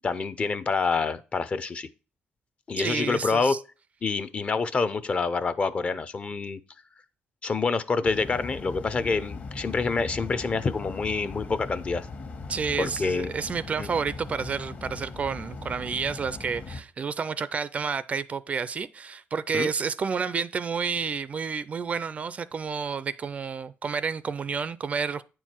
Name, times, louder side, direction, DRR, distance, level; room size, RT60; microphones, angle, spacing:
voice 1, 0.0-1.9 2.7-3.6 4.0-6.6 7.4-12.1 12.8-13.3 13.8-13.9 19.5-19.7, left 4 dB, 35° left, 0.5 m, -27 dB
voice 2, 2.8-3.6 12.5-25.2, right 5 dB, 35° right, 0.4 m, -30 dB
sound 1, 8.0-16.8, left 3 dB, 50° left, 1.3 m, -39 dB
8.8 x 4.6 x 4.4 m
cardioid pair, 120°, 4 cm